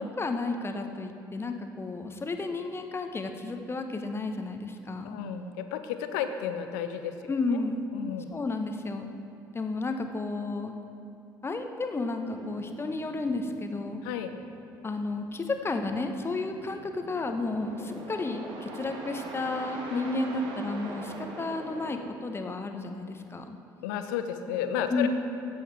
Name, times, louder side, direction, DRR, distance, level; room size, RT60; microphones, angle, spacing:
voice 1, 0.0-5.2 7.3-7.9 8.3-9.1 9.5-10.7 11.4-14.0 14.8-23.6 24.9-25.1, left 3 dB, 25° left, 6 dB, 1.0 m, -32 dB
voice 2, 5.0-7.6 7.9-8.4 14.0-14.3 19.9-20.0 23.8-25.1, left 9 dB, 65° left, 8 dB, 0.7 m, -33 dB
sound 1, 12.3-22.1, right 2 dB, 55° right, 1.4 m, -43 dB
16.5 x 8.4 x 3.4 m, 2.6 s
figure-of-eight pair, 50°, 10 cm